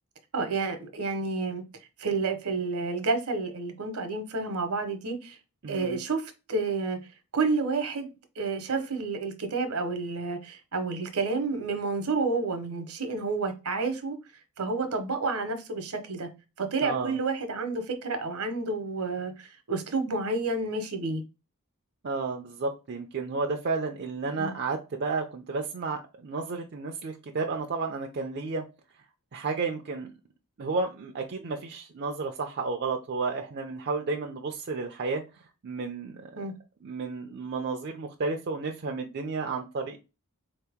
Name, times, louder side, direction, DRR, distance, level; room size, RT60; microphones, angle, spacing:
voice 1, 0.3-1.6 2.0-5.4 5.7-7.0 7.3-8.1 8.4-14.2 14.6-16.3 16.6-21.2 24.3-24.5 36.4-36.5, right 3 dB, 75° right, 0.9 m, -30 dB
voice 2, 5.6-6.0 16.8-17.2 22.0-28.6 29.3-30.1 30.6-35.2 35.6-36.3 36.8-40.0, right 4 dB, 50° right, 0.4 m, -32 dB
4.1 x 2.8 x 3.4 m
head